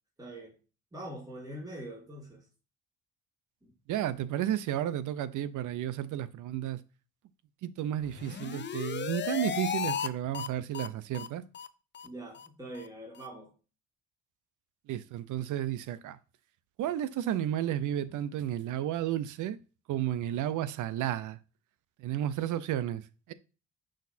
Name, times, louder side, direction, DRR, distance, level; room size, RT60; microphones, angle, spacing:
voice 1, 0.2-0.5 0.9-2.5 3.6-3.7 12.0-13.5, right 1 dB, 10° right, 2.1 m, -43 dB
voice 2, 3.9-6.8 7.6-11.4 14.9-16.2 16.8-19.6 19.9-21.4 22.0-23.3, right 11 dB, 80° right, 0.6 m, -32 dB
sound 1, 8.1-10.1 10.3-10.5 10.7-10.9 11.1-11.3 11.5-11.7 11.9-12.1 12.4-12.5 12.8-12.9 13.2-13.3, left 8 dB, 40° left, 0.5 m, -35 dB
6.3 x 6.3 x 2.7 m
cardioid pair, 90°, 30 cm